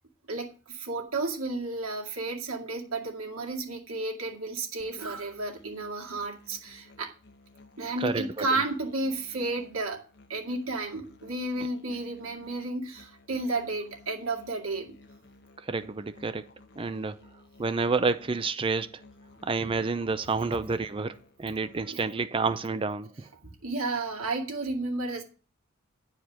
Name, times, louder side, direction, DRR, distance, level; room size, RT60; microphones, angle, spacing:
voice 1, 0.3-7.1 7.8-10.0 10.3-14.9 21.9-22.1 23.2-25.2, right 2 dB, 80° right, 2.3 m, -32 dB
Musical instrument, 4.8-21.8, left 2 dB, 50° left, 1.1 m, -56 dB
voice 2, 8.0-8.6 15.6-16.5 16.8-17.2 17.6-18.9 19.4-23.3, right 4 dB, 25° right, 0.4 m, -29 dB
9.7 x 4.8 x 7.3 m
head